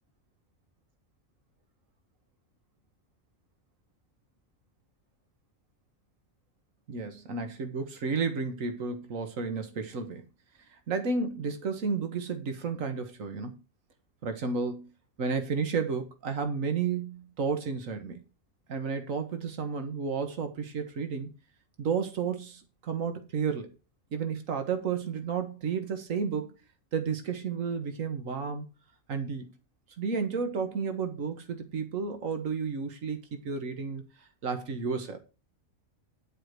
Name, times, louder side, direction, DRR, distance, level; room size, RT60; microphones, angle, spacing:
voice 1, 6.9-10.2 10.9-13.6 14.2-14.9 15.2-18.2 18.7-21.3 21.8-23.7 24.1-26.5 26.9-28.7 29.1-29.5 30.0-34.0 34.4-35.2, right 5 dB, 85° right, 1.6 m, -32 dB
10.5 x 4.6 x 6.6 m
omnidirectional pair, 1.3 m